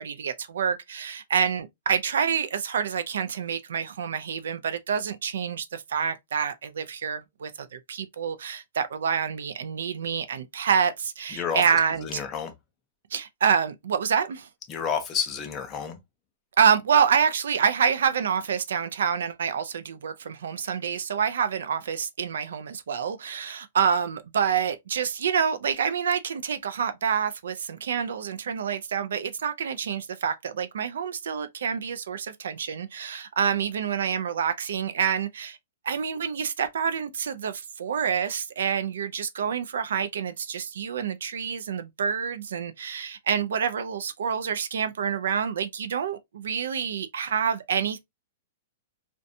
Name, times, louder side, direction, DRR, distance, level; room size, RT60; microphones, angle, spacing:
voice 1, 0.0-12.0 13.1-14.5 16.6-35.6 35.9-48.0, right 7 dB, 75° right, 0.3 m, -27 dB
voice 2, 11.3-11.7 12.0-12.5 14.7-16.0, left 7 dB, 15° left, 0.4 m, -30 dB
2.6 x 2.2 x 2.5 m
hypercardioid pair, 175°, 0 cm